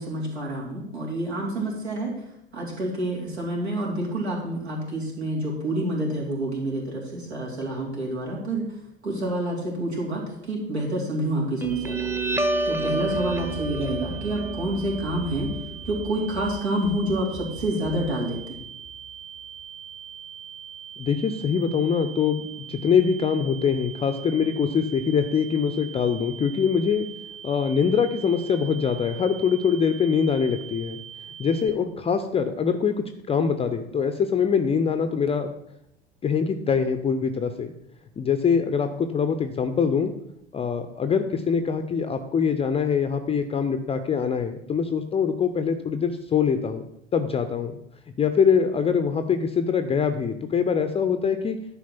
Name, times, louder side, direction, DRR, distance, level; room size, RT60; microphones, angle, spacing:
voice 1, 0.0-2.1 2.5-8.6 9.0-12.0 12.6-15.5 15.8-18.6, right 1 dB, 80° right, -3 dB, 3.3 m, -28 dB
Guitar, 11.6-18.6, right 2 dB, 5° right, 0.8 m, -30 dB
sound 1, 11.7-31.7, right 9 dB, 25° right, 1.6 m, -42 dB
voice 2, 21.0-27.0 27.4-31.0 31.4-35.5 36.2-37.7 38.2-40.1 40.5-46.8 47.1-47.8 48.2-51.6, left 6 dB, 20° left, 9 dB, 0.6 m, -23 dB
10.5 x 4.6 x 5.8 m, 0.79 s
figure-of-eight pair, 75°, 32 cm